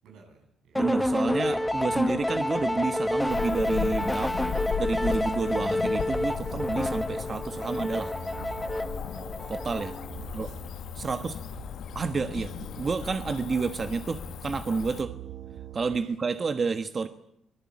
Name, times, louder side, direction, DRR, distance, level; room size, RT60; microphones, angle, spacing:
voice 1, 0.0-0.8 10.2-10.6 11.0-11.7 15.9-16.2, right 4 dB, 80° right, 3 dB, 7.4 m, -54 dB
voice 2, 0.7-4.3 4.8-8.1 9.5-10.0 10.3-10.5 10.9-11.3 11.9-15.1 15.7-17.1, right 4 dB, 40° right, 9 dB, 1.3 m, -30 dB
sound 1, 0.8-10.2, left 1 dB, 10° left, 1.3 m, -29 dB
sound 2, 1.0-16.0, right 9 dB, 65° right, 1.1 m, -46 dB
Cricket / Motor vehicle (road), 3.3-15.0, left 8 dB, 70° left, 1.1 m, -37 dB
24.0 x 20.5 x 8.6 m, 0.77 s
cardioid pair, 90°, 0 cm